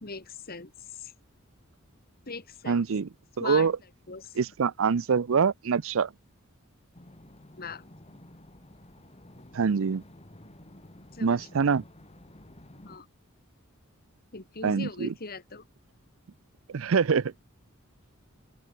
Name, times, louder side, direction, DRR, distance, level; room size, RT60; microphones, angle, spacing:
voice 1, 0.0-1.1 2.3-2.8 3.4-3.7 4.1-4.4 7.6-7.8 11.1-11.5 12.8-13.1 14.3-15.7, left 4 dB, 45° left, 2.4 m, -40 dB
voice 2, 2.7-3.1 3.4-3.7 4.4-6.1 9.5-10.0 11.2-11.8 14.6-15.1 16.7-17.3, right 5 dB, 70° right, 0.5 m, -25 dB
sound 1, 6.9-13.0, left 1 dB, 30° left, 2.9 m, -52 dB
open air
head